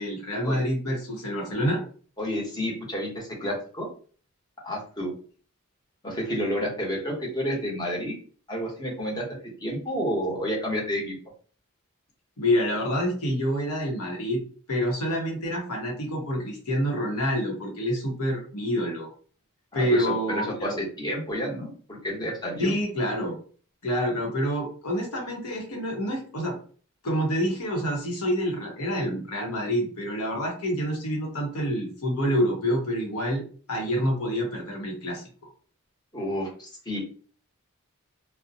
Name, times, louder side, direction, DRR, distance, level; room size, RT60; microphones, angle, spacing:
voice 1, 0.0-1.8 12.4-14.4 14.7-19.1 19.7-20.8 22.6-23.4 23.8-26.6 27.0-33.4 33.7-35.2, equal, 80° left, -1 dB, 0.8 m, -27 dB
voice 2, 2.2-3.9 4.6-5.1 6.0-8.1 8.5-9.3 9.6-11.2 19.7-21.7 22.0-22.7 36.1-37.0, equal, 20° left, -3 dB, 0.8 m, -30 dB
2.5 x 2.0 x 2.6 m, 0.42 s
head